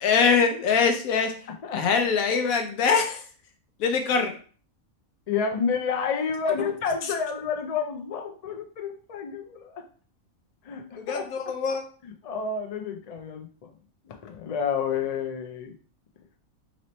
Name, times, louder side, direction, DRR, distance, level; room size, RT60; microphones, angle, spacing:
voice 1, 0.0-1.3 1.7-3.2 3.8-4.3 6.6-6.7 10.9-11.8, left 5 dB, 90° left, 5 dB, 1.2 m, -23 dB
voice 2, 5.3-9.9 10.6-11.5 12.0-13.8 14.0-15.7, left 6 dB, 60° left, 4 dB, 0.4 m, -30 dB
3.1 x 3.0 x 4.1 m, 0.42 s
omnidirectional pair, 1.4 m